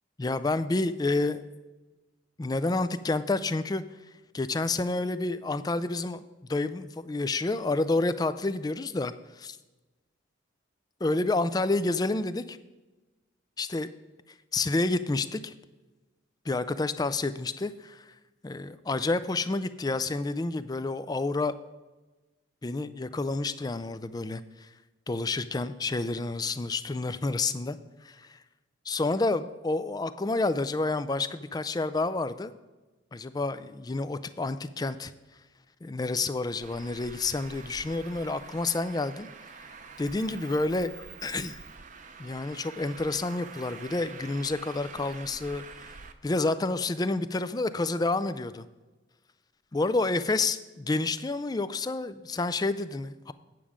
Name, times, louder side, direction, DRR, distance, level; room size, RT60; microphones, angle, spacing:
voice 1, 0.2-1.4 2.4-3.8 4.3-6.2 6.5-9.6 11.0-12.6 13.6-13.9 14.5-15.5 16.5-18.1 18.4-21.5 22.6-24.7 25.1-28.4 28.9-32.5 33.1-35.1 35.8-39.3 40.0-41.6 42.2-46.0 46.2-48.7 49.7-53.3, left 3 dB, 20° left, 13 dB, 0.3 m, -29 dB
Traffic noise roadway noise, 36.6-46.1, right 5 dB, 40° right, 0.6 m, -46 dB
9.3 x 7.2 x 5.0 m, 1.2 s
head